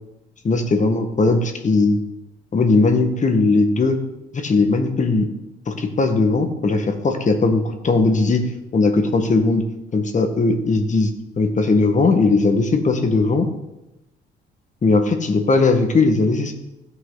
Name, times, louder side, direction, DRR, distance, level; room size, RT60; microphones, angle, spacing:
voice 1, 0.4-2.0 2.5-4.0 4.3-5.3 5.7-8.4 8.7-9.6 9.9-11.1 11.4-13.5 14.8-16.5, left 3 dB, 40° left, 6 dB, 1.7 m, -18 dB
16.0 x 6.0 x 4.0 m, 0.92 s
cardioid pair, 90°, 20 cm